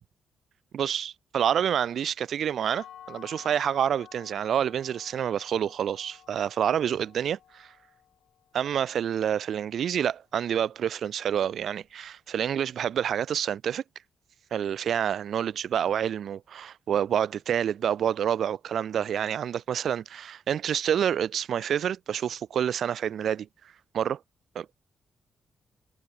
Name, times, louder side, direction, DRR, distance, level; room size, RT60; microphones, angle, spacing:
voice 1, 0.7-7.7 8.5-13.8 14.5-23.5 23.9-24.2 24.6-24.7, right 9 dB, 65° right, 1.9 m, -28 dB
sound 1, 2.7-8.5, left 10 dB, 75° left, 5.7 m, -51 dB
wide cardioid pair, 145°, 0 cm